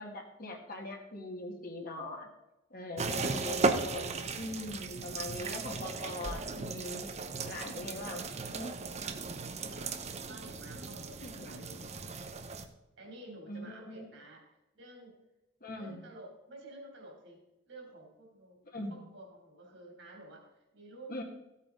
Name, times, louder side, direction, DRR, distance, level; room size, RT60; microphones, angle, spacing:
voice 1, 0.0-2.3 2.7-7.1 7.4-8.7 11.2-11.6 13.5-14.1 15.6-16.0 18.7-19.0 21.1-21.2, left 1 dB, 45° left, 1 dB, 1.9 m, -41 dB
sound 1, 3.0-12.7, right 3 dB, 35° right, 0.8 m, -36 dB
voice 2, 9.0-10.0 10.2-12.2 13.0-14.4 14.7-15.2 15.8-18.6 18.9-21.1, right 1 dB, 65° right, 2 dB, 3.4 m, -51 dB
15.0 x 8.4 x 3.9 m, 0.94 s
head